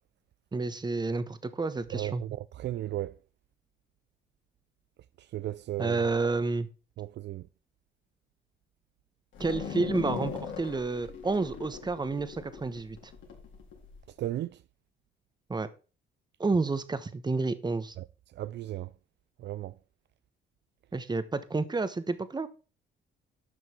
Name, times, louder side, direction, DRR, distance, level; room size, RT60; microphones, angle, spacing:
voice 1, 0.5-2.2 5.8-6.7 9.4-13.1 15.5-15.7 16.4-17.9 20.9-22.5, right 3 dB, 20° right, 1.1 m, -30 dB
voice 2, 1.9-3.1 5.3-6.0 7.0-7.4 14.2-14.5 18.0-18.1 18.4-18.9 19.4-19.7, right 14 dB, 60° right, 0.4 m, -35 dB
sound 1, 9.3-14.0, left 7 dB, 75° left, 3.6 m, -39 dB
11.0 x 6.4 x 4.4 m
cardioid pair, 90°, 20 cm